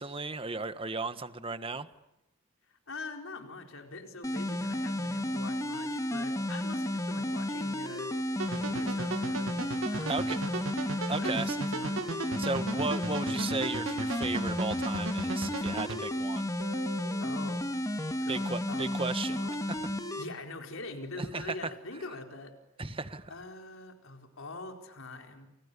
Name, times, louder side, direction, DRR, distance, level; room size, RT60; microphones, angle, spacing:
voice 1, 0.0-1.9 10.1-10.4 11.1-11.6 12.4-16.5 18.3-19.4 19.7-19.8 21.2-21.6 22.8-23.3, right 3 dB, 25° right, 11 dB, 1.4 m, -35 dB
voice 2, 2.7-8.2 8.6-9.5 9.9-10.5 11.2-11.9 17.2-17.6 18.2-18.9 19.2-19.5 20.2-22.5 23.3-25.5, left 2 dB, 75° left, 3 dB, 4.5 m, -44 dB
sound 1, 4.2-20.2, left 1 dB, 15° left, 2.1 m, -32 dB
sound 2, 8.4-16.0, right 3 dB, 70° right, 1.6 m, -37 dB
Guitar, 16.6-19.5, equal, 55° right, 3.0 m, -49 dB
30.0 x 29.0 x 6.9 m, 0.88 s
head